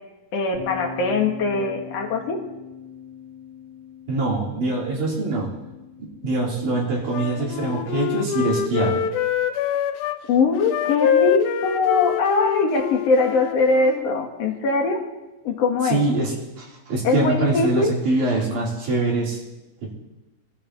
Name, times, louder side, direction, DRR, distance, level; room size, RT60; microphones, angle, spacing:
voice 1, 0.3-2.4 10.3-15.0 15.4-16.0 17.0-17.9, left 3 dB, 60° left, 2 dB, 2.5 m, -21 dB
sound 1, 0.5-6.8, left 4 dB, 20° right, 2.8 m, -40 dB
voice 2, 4.1-5.5 6.0-9.0 15.8-19.4, right 2 dB, 75° right, -4 dB, 4.7 m, -24 dB
Wind instrument woodwind instrument, 7.1-10.2 10.6-14.1, left 9 dB, 90° left, 2.1 m, -25 dB
23.5 x 12.5 x 2.9 m, 1.0 s
omnidirectional pair, 3.5 m